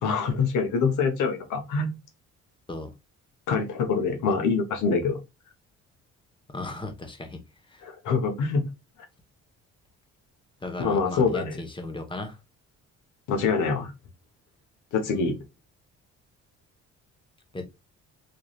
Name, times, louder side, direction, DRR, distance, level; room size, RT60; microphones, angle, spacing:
voice 1, 0.0-1.9 3.5-5.2 7.8-8.6 10.8-11.6 13.3-13.9 14.9-15.4, left 5 dB, 90° left, 1.1 m, -25 dB
voice 2, 6.5-7.4 7.7-7.8 10.6-12.4 17.5-17.7, left 2 dB, 15° left, 1.1 m, -36 dB
4.7 x 3.2 x 2.4 m
cardioid pair, 90°, 30 cm